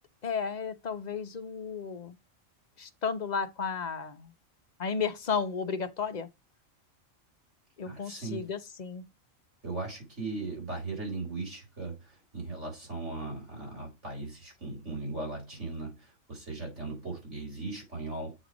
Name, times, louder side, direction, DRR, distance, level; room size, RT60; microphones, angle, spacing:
voice 1, 0.2-2.2 2.8-4.3 4.8-6.3 7.8-9.0, left 6 dB, 40° left, 0.8 m, -33 dB
voice 2, 7.8-8.5 9.6-18.4, right 3 dB, 60° right, 4.7 m, -38 dB
8.2 x 3.2 x 5.1 m
omnidirectional pair, 1.4 m